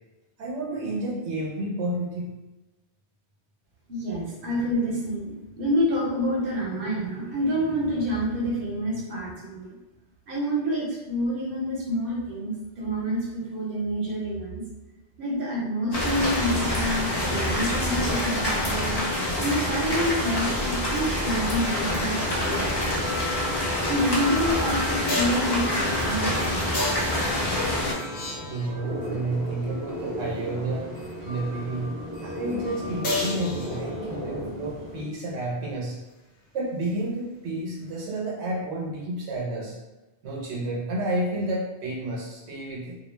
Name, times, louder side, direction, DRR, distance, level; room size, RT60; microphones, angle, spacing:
voice 1, 0.4-2.3 28.4-30.9 31.2-36.0 36.5-39.8 40.2-43.0, right 1 dB, 80° right, -4 dB, 0.9 m, -30 dB
voice 2, 3.9-9.7 10.3-14.6 15.2-19.0 19.4-23.1 23.9-26.8, equal, 55° right, -4 dB, 0.9 m, -28 dB
sound 1, 15.9-27.9, left 1 dB, 35° left, 0.4 m, -26 dB
sound 2, 21.9-35.0, equal, 25° right, 0.5 m, -35 dB
sound 3, 25.1-25.5 26.7-28.9 33.0-34.2 38.0-38.1, left 2 dB, 65° left, 0.9 m, -32 dB
2.3 x 2.1 x 3.1 m, 1.1 s
omnidirectional pair, 1.1 m